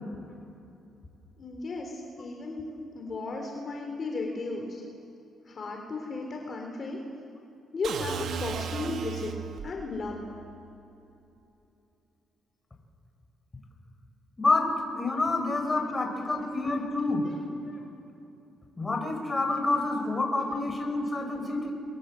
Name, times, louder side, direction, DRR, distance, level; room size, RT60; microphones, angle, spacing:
voice 1, 1.4-2.6 2.9-4.8 5.5-7.0 7.7-9.3 9.6-10.3 15.7-15.9 17.2-17.4 17.6-17.8 20.5-20.6 21.2-21.7, left 3 dB, 45° left, 2 dB, 3.8 m, -35 dB
sound 1, 7.8-9.8, right 7 dB, 70° right, 2.0 m, -35 dB
voice 2, 15.0-17.2 18.8-21.7, left 3 dB, 20° left, 3 dB, 5.7 m, -28 dB
29.5 x 24.0 x 7.8 m, 2.8 s
cardioid pair, 90°, 0 cm